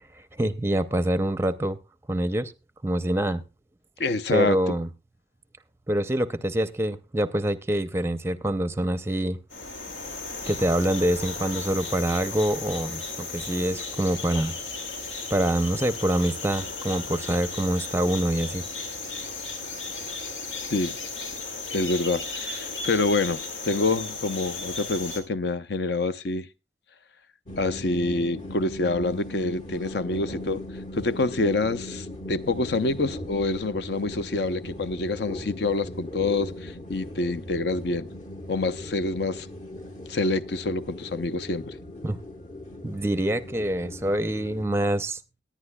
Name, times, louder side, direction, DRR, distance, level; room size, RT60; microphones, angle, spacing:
voice 1, 0.3-1.8 2.1-2.5 2.8-3.4 4.3-4.9 5.9-9.4 10.5-14.5 15.3-18.6 42.0-42.2 42.8-45.2, right 1 dB, 15° right, 0.5 m, -25 dB
voice 2, 4.0-4.8 20.7-20.9 21.7-26.5 27.6-30.6 30.9-38.1 38.5-39.5 40.1-41.7, left 3 dB, 65° left, 0.6 m, -27 dB
sound 1, 9.5-25.2, left 3 dB, 90° left, 2.3 m, -35 dB
sound 2, 27.5-44.6, left 1 dB, 40° left, 1.2 m, -38 dB
19.5 x 10.5 x 2.2 m
head